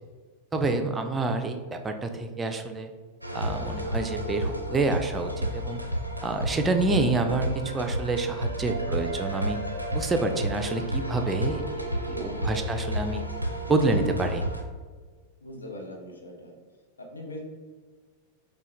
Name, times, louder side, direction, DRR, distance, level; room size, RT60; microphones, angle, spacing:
voice 1, 0.5-2.9 3.3-5.8 6.2-9.6 9.9-11.6 12.1-13.2 13.7-14.4, right 3 dB, 15° right, 5 dB, 0.4 m, -27 dB
sound 1, 3.2-14.6, right 1 dB, 90° right, 0.4 m, -31 dB
voice 2, 12.0-12.5 15.4-16.5 17.0-17.4, left 1 dB, 75° left, 1 dB, 0.8 m, -41 dB
5.3 x 2.2 x 3.1 m, 1.5 s
figure-of-eight pair, 90°, 0 cm